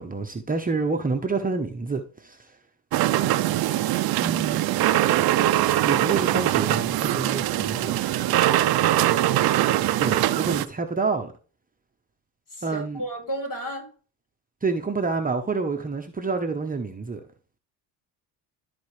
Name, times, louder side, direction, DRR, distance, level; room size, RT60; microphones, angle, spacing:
voice 1, 0.0-2.4 4.2-4.6 5.8-8.1 10.0-11.3 12.6-13.0 14.6-17.2, right 4 dB, 20° right, 1.0 m, -28 dB
sound 1, 2.9-10.7, right 14 dB, 55° right, 0.6 m, -22 dB
voice 2, 12.5-13.9, right 1 dB, 45° left, 4.1 m, -33 dB
13.0 x 4.3 x 3.3 m
supercardioid pair, 80°, 43 cm